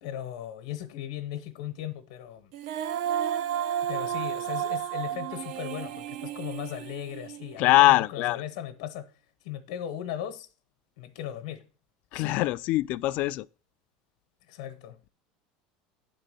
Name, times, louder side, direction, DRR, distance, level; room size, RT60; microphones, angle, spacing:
voice 1, 0.0-2.5 3.8-9.1 9.4-10.5 11.0-11.7 12.1-12.5 14.5-15.0, left 11 dB, 80° left, 0.9 m, -37 dB
Female singing, 2.5-7.7, right 10 dB, 70° right, 0.7 m, -32 dB
voice 2, 7.6-8.4 12.1-13.5, left 18 dB, 50° left, 0.3 m, -22 dB
10.0 x 3.9 x 6.7 m
cardioid pair, 150°, 3 cm